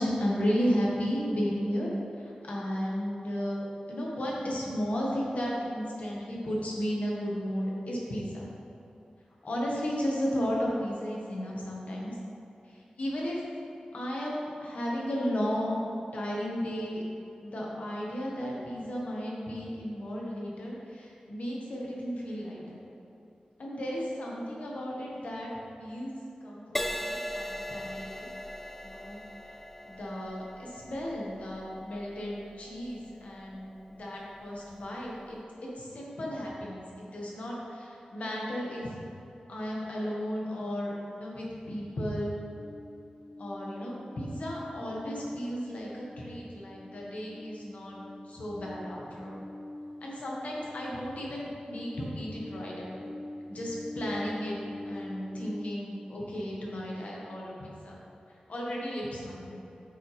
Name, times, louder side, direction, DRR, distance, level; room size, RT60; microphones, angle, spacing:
voice 1, 0.0-1.9 2.1-8.4 9.4-12.1 13.0-13.4 13.9-15.8 16.1-17.0 17.4-22.8 23.6-25.5 25.8-26.1 26.4-28.3 28.8-29.2 29.8-38.9 39.5-40.9 41.2-42.4 43.4-48.0 48.2-49.4 50.0-53.0 53.5-54.6 54.8-58.0 58.5-59.6, equal, 65° left, -4 dB, 1.6 m, -34 dB
Crash cymbal, 26.8-34.4 35.1-35.4, left 1 dB, 5° left, 0.4 m, -40 dB
sound 1, 42.5-55.6, left 1 dB, 35° left, 0.8 m, -45 dB
9.3 x 5.7 x 3.5 m, 2.7 s
wide cardioid pair, 125°, 3 cm